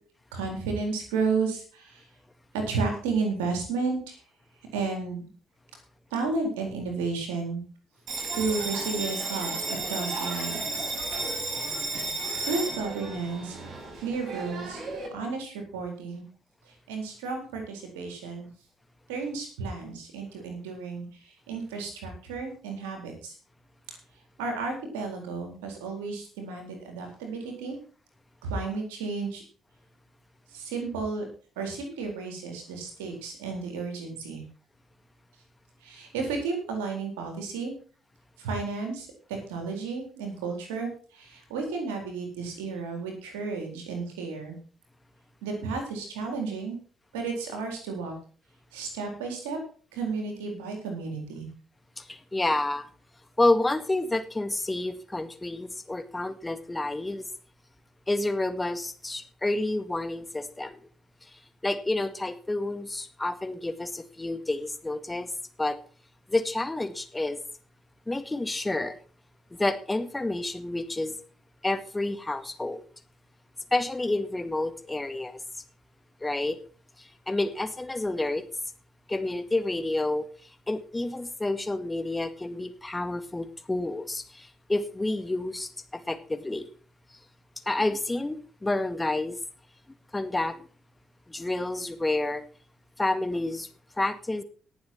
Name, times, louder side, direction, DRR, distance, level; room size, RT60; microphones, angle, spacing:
voice 1, 0.3-2.0 2.5-4.2 4.7-5.3 6.1-7.6 8.3-10.9 12.5-13.6 14.0-14.8 15.1-16.2 16.7-18.5 19.1-23.3 24.4-27.8 28.4-29.4 30.5-31.2 31.6-34.4 35.8-37.7 38.4-44.6 45.4-46.8 47.1-48.2 48.7-49.6 49.9-51.5, right 4 dB, 70° right, 3 dB, 4.1 m, -32 dB
Bell, 8.1-15.1, right 2 dB, 50° right, 5.9 m, -33 dB
voice 2, 52.0-52.9 53.4-57.3 58.1-60.8 61.6-65.3 65.6-65.8 66.3-67.4 68.1-69.0 69.6-71.2 71.6-72.8 73.7-75.4 76.2-76.6 77.0-78.4 79.1-80.2 80.7-86.7 87.7-89.4 90.1-90.6 91.3-92.4 93.0-93.7 94.0-94.4, left 2 dB, 15° left, 11 dB, 1.9 m, -29 dB
18.5 x 7.5 x 4.5 m, 0.41 s
figure-of-eight pair, 45°, 0 cm